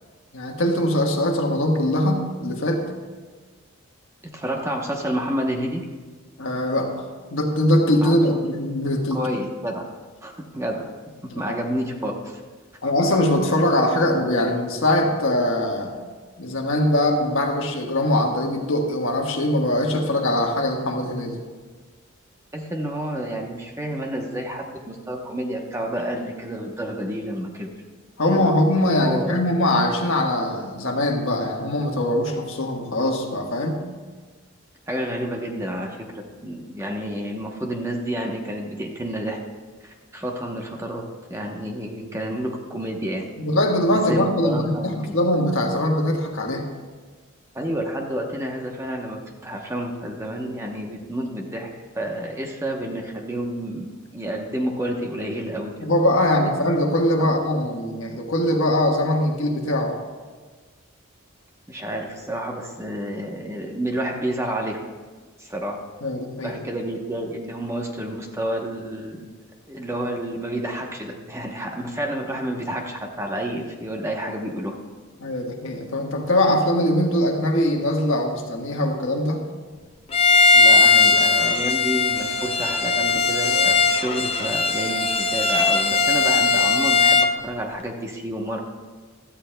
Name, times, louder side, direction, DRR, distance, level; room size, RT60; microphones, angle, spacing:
voice 1, 0.3-2.9 6.4-7.0 7.3-9.2 11.3-11.6 12.8-16.0 16.4-21.4 28.2-33.8 43.4-46.6 55.8-59.9 66.0-66.6 75.2-79.4, left 1 dB, 70° left, 1 dB, 1.4 m, -22 dB
voice 2, 4.3-5.8 8.0-8.4 9.1-9.9 10.2-10.8 11.2-12.4 22.5-27.7 28.2-28.4 29.0-29.4 34.9-39.4 39.8-41.0 41.3-43.3 43.9-45.1 47.5-51.7 51.9-55.7 57.2-57.4 61.7-64.8 65.4-65.8 66.4-69.2 69.7-74.8 80.5-88.6, right 1 dB, 15° right, 1 dB, 0.9 m, -29 dB
Bowed string instrument, 80.1-87.4, left 4 dB, 25° left, 0.5 m, -18 dB
16.0 x 12.5 x 2.2 m, 1.4 s
head